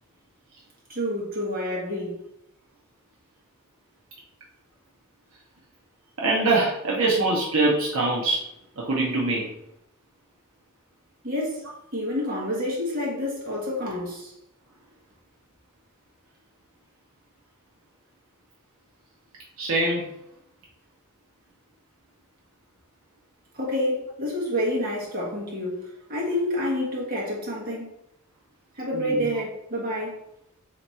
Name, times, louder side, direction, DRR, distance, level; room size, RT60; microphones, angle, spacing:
voice 1, 0.9-2.2 11.2-11.7 11.9-14.3 23.5-27.9 28.8-30.2, left 1 dB, 40° right, 1.4 m, -28 dB
voice 2, 6.2-8.4 8.8-9.5 19.6-20.1 28.9-29.3, right 2 dB, 70° right, 0.7 m, -23 dB
3.4 x 2.9 x 4.2 m
head